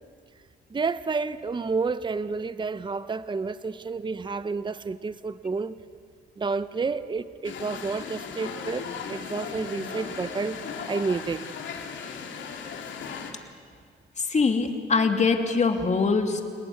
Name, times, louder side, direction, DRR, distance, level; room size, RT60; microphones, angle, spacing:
voice 1, 0.7-5.8 6.4-10.6 10.9-11.5, right 4 dB, 25° right, 14 dB, 0.8 m, -30 dB
sound 1, 7.4-13.3, left 6 dB, 70° left, 3.1 m, -37 dB
voice 2, 14.2-16.4, left 4 dB, 35° left, 5 dB, 2.9 m, -23 dB
28.5 x 19.5 x 9.5 m, 2.1 s
cardioid pair, 90°, 20 cm